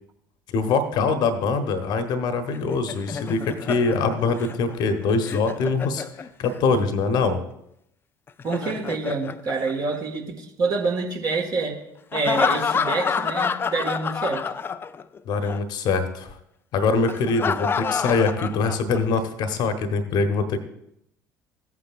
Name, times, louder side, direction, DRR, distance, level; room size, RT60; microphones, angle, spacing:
voice 1, 0.5-6.0 6.4-7.4 15.3-16.4 16.7-20.6, left 4 dB, 50° left, 9 dB, 1.0 m, -23 dB
Laughter, 2.5-6.6 8.3-10.4 12.1-15.2 15.4-15.6 17.1-19.2, left 6 dB, 25° left, 0.4 m, -28 dB
voice 2, 8.4-11.8 12.1-14.4, right 3 dB, 40° right, 2 dB, 1.8 m, -27 dB
15.0 x 8.3 x 2.5 m, 0.77 s
figure-of-eight pair, 60°, 9 cm